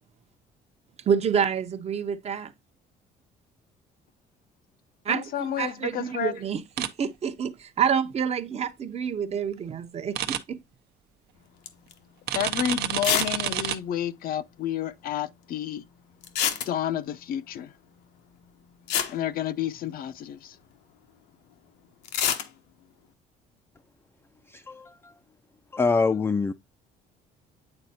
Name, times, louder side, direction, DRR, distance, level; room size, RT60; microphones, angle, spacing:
voice 1, 1.1-2.5 5.0-10.6, right 7 dB, 40° right, 0.7 m, -28 dB
voice 2, 5.1-6.3 12.3-15.8 16.7-17.7 19.1-20.6, left 10 dB, 60° left, 0.6 m, -30 dB
sound 1, 6.8-6.9 10.1-10.4 12.3-13.8, right 11 dB, 75° right, 0.7 m, -28 dB
sound 2, 11.7-11.9 12.3-12.4 13.0-13.4 13.6-13.7 13.9-14.0 16.2-17.1 18.5-18.6 18.9-20.1 22.0-22.5, left 9 dB, 90° left, 0.9 m, -27 dB
voice 3, 24.5-25.1 25.7-26.5, left 4 dB, 15° left, 0.3 m, -25 dB
8.8 x 4.1 x 2.7 m
cardioid pair, 110°, 17 cm